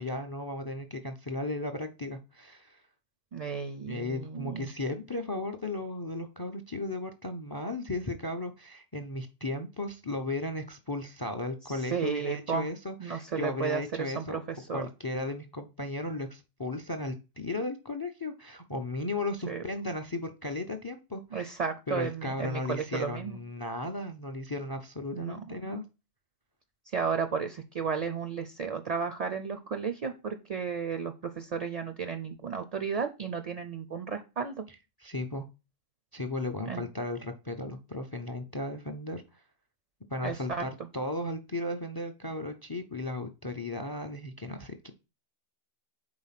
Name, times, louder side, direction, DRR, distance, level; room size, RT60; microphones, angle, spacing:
voice 1, 0.0-2.8 3.8-14.4 14.7-21.6 21.9-25.8 35.0-35.4 36.1-39.2 40.1-44.9, left 2 dB, 35° left, 8 dB, 0.3 m, -35 dB
voice 2, 3.3-4.7 11.9-12.7 13.0-14.9 19.5-19.6 21.3-23.4 25.1-25.4 26.9-34.6 36.7-36.8 40.2-40.6, right 6 dB, 55° right, 8 dB, 0.4 m, -33 dB
4.9 x 3.9 x 5.7 m, 0.29 s
omnidirectional pair, 1.2 m